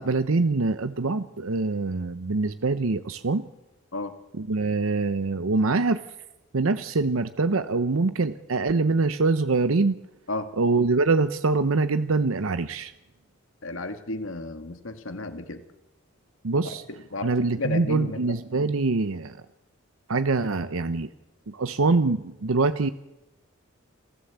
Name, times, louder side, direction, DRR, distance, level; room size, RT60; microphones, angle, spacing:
voice 1, 0.0-3.5 4.3-6.0 6.5-10.0 10.6-12.9 16.4-16.8 17.2-19.3 20.1-21.1 21.5-22.9, right 3 dB, 80° right, 12 dB, 0.8 m, -24 dB
voice 2, 13.6-15.6 17.1-18.2, left 2 dB, 70° left, 8 dB, 1.9 m, -33 dB
27.5 x 15.0 x 8.1 m, 0.95 s
head